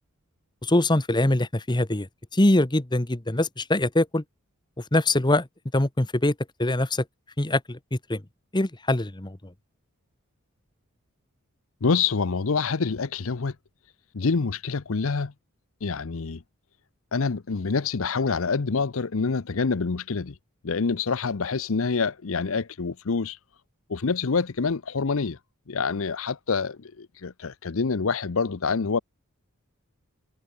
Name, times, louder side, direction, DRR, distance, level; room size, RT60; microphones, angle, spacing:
voice 1, 0.6-4.2 4.9-5.5 5.7-7.0 7.4-8.2 8.5-9.4, left 1 dB, 20° left, 1.2 m, -23 dB
voice 2, 11.8-13.5 14.1-15.3 15.8-16.4 17.1-20.3 20.6-23.4 23.9-25.4 25.7-29.0, left 4 dB, 65° left, 0.7 m, -26 dB
head